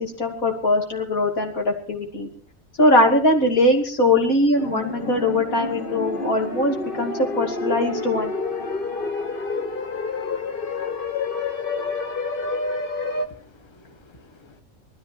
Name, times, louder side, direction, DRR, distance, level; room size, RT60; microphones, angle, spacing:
voice 1, 0.0-2.3 2.8-8.3, left 1 dB, 90° left, 2 dB, 3.1 m, -21 dB
sound 1, 4.6-13.3, left 3 dB, 40° left, 1.4 m, -28 dB
voice 2, 13.0-14.6, left 2 dB, 20° left, 7 dB, 1.4 m, -51 dB
19.5 x 13.5 x 4.5 m, 0.43 s
omnidirectional pair, 1.4 m